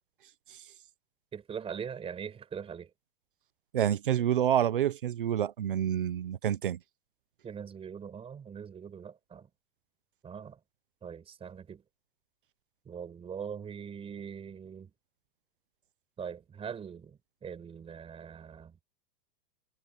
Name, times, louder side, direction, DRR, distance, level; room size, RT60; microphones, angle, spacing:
voice 1, 1.3-2.9 7.4-9.5 10.2-10.6 11.0-11.8 12.9-14.9 16.2-18.7, right 7 dB, 10° right, 5.7 m, -42 dB
voice 2, 3.7-6.8, right 10 dB, 35° right, 0.4 m, -28 dB
supercardioid pair, 170°, 48 cm